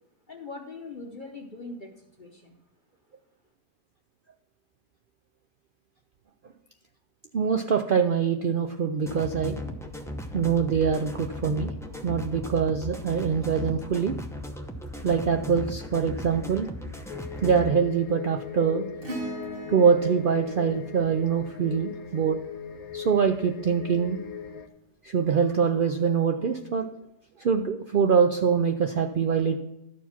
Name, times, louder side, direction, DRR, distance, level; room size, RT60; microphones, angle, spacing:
voice 1, 0.3-2.6, left 3 dB, 45° left, 2 dB, 0.8 m, -41 dB
voice 2, 7.3-9.6 10.3-11.7 12.0-14.1 15.0-16.7 17.4-18.9 19.7-22.4 22.9-24.2 25.0-26.9 27.4-29.6, right 6 dB, 75° right, 5 dB, 0.4 m, -24 dB
sound 1, 9.0-17.7, equal, 5° left, 0.4 m, -37 dB
sound 2, 17.1-24.7, left 8 dB, 75° left, 1.1 m, -40 dB
Acoustic guitar / Strum, 19.0-23.6 25.5-25.6, equal, 40° right, 1.5 m, -40 dB
12.0 x 4.6 x 5.7 m, 0.86 s
omnidirectional pair, 1.5 m